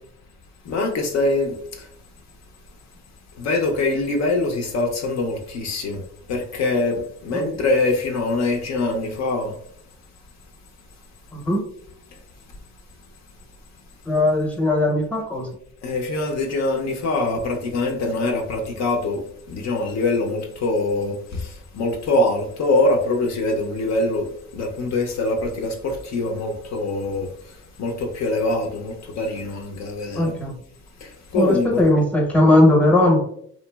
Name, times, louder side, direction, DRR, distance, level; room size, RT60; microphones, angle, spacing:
voice 1, 0.6-1.9 3.4-9.6 15.8-30.3 31.0-31.8, left 2 dB, 60° left, 0.5 m, -24 dB
voice 2, 11.3-11.6 14.1-15.5 30.2-30.5 31.4-33.2, left 1 dB, 5° left, 0.7 m, -18 dB
2.9 x 2.5 x 2.2 m
cardioid pair, 90°, 30 cm